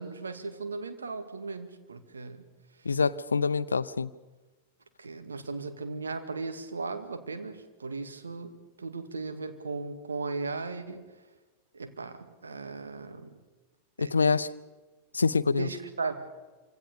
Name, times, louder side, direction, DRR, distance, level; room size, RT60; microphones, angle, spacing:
voice 1, 0.0-2.4 5.0-11.1 11.7-13.3 14.0-14.4 15.6-16.3, right 4 dB, 75° right, 7 dB, 2.2 m, -37 dB
voice 2, 2.8-4.1 14.0-14.5 15.1-15.7, left 4 dB, 75° left, 17 dB, 0.7 m, -25 dB
27.5 x 25.5 x 5.1 m, 1.2 s
figure-of-eight pair, 90°, 0 cm